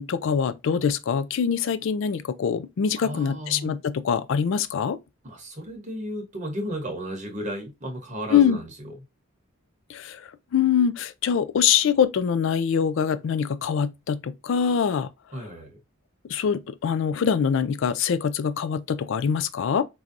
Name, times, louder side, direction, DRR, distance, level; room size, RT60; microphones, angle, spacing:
voice 1, 0.0-5.0 8.3-8.6 9.9-10.2 10.5-15.1 16.3-19.8, left 7 dB, 65° left, 0.3 m, -24 dB
voice 2, 3.0-3.8 5.2-8.9 15.3-15.8, equal, 35° right, 0.9 m, -34 dB
4.5 x 2.7 x 2.5 m
head